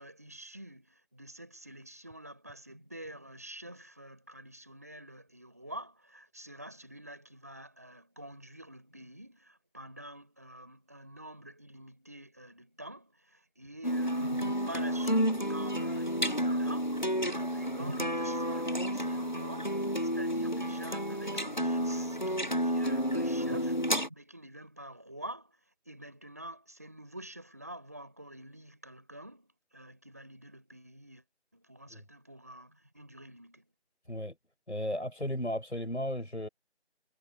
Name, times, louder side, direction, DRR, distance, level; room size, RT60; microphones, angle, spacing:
voice 1, 0.0-31.2 31.5-33.7, right 1 dB, 15° right, 4.7 m, -47 dB
sound 1, 13.8-24.1, equal, 45° left, 0.7 m, -31 dB
voice 2, 34.7-36.5, left 1 dB, 90° left, 7.0 m, -34 dB
figure-of-eight pair, 175°, 34 cm